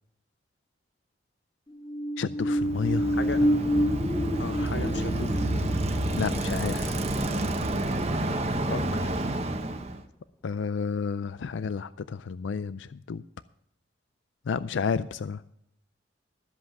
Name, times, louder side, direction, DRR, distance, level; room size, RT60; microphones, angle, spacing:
sound 1, 1.7-8.0 8.4-8.5, equal, 20° left, 2.0 m, -29 dB
voice 1, 2.2-3.5 6.2-7.0 10.4-13.2 14.5-15.4, left 5 dB, 85° left, 15 dB, 0.4 m, -31 dB
Bicycle, 2.5-10.0, right 1 dB, 35° right, 1.0 m, -29 dB
voice 2, 3.2-3.5 4.4-5.7 8.7-9.2, left 2 dB, 70° left, 11 dB, 0.9 m, -36 dB
sound 2, 3.3-9.9, equal, 5° left, 0.8 m, -43 dB
13.0 x 7.9 x 5.9 m, 0.72 s
head